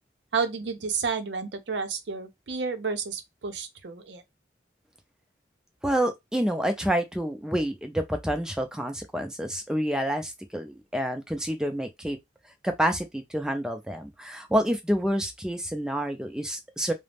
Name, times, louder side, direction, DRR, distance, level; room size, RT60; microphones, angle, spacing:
voice 1, 0.3-4.2, right 5 dB, 75° right, 0.5 m, -31 dB
voice 2, 5.8-12.2 12.6-16.9, equal, 5° right, 0.4 m, -28 dB
2.4 x 2.0 x 3.3 m
head